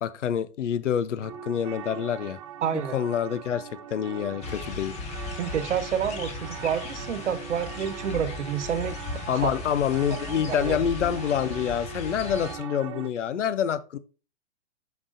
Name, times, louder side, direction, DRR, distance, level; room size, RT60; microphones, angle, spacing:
voice 1, 0.0-2.4 2.7-5.0 9.3-14.0, left 8 dB, 80° left, 0.8 m, -27 dB
sound 1, 1.2-13.1, right 8 dB, 30° right, 0.4 m, -41 dB
voice 2, 2.6-3.0 5.3-9.5 10.3-10.8, right 8 dB, 75° right, 1.1 m, -29 dB
sound 2, 4.4-12.6, left 4 dB, 20° left, 1.1 m, -37 dB
7.3 x 6.1 x 2.6 m
hypercardioid pair, 140°, 35 cm